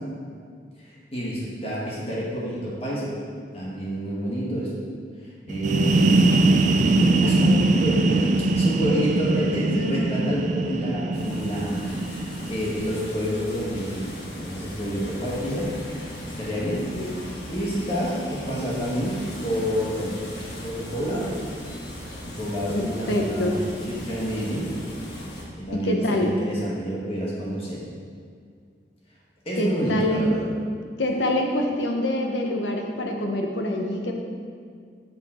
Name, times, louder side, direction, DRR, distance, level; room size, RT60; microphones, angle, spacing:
voice 1, 0.8-3.1 3.5-4.7 5.2-6.5 7.0-15.7 16.2-16.9 17.5-20.2 20.6-21.3 22.3-24.7 25.6-27.8 29.4-30.5, equal, 35° left, -6 dB, 1.4 m, -29 dB
sound 1, 5.5-13.1, right 2 dB, 45° right, 0.4 m, -22 dB
voice 2, 7.0-7.5 9.7-10.1 16.7-17.1 22.7-23.6 25.7-26.3 29.6-30.4 31.0-34.1, left 1 dB, 90° left, 2 dB, 1.0 m, -26 dB
sound 2, 11.1-25.4, equal, 65° left, 1.4 m, -38 dB
6.9 x 6.6 x 4.3 m, 2.1 s
head